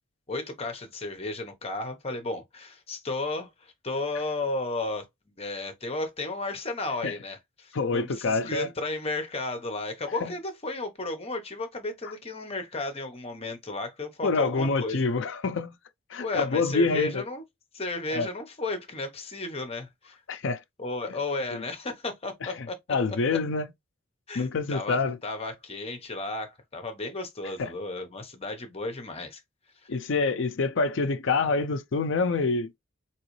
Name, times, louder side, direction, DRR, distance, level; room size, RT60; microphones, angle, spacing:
voice 1, 0.3-5.1 5.4-15.0 16.2-17.4 17.7-20.2 20.8-22.8 23.3-23.4 24.3-29.4, left 2 dB, 30° left, 0.9 m, -33 dB
voice 2, 7.7-8.7 10.2-10.3 14.2-15.7 16.1-17.2 18.1-18.3 20.3-20.6 21.5-21.6 22.4-22.5 22.9-23.7 24.3-25.2 27.6-27.7 29.9-32.8, left 4 dB, 60° left, 0.5 m, -26 dB
3.8 x 3.0 x 3.1 m
head